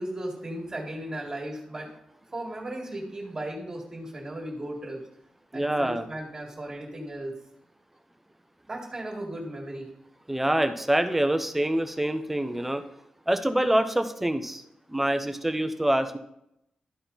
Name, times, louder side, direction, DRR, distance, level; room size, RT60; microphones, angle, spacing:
voice 1, 0.0-1.9 2.3-5.0 5.5-7.3 8.7-9.9, right 1 dB, 30° right, -1 dB, 1.9 m, -36 dB
voice 2, 5.5-6.1 10.3-12.8 13.3-14.6 14.9-16.2, right 1 dB, 10° right, 8 dB, 0.7 m, -25 dB
12.5 x 4.3 x 3.9 m, 0.79 s
cardioid pair, 95°, 2 cm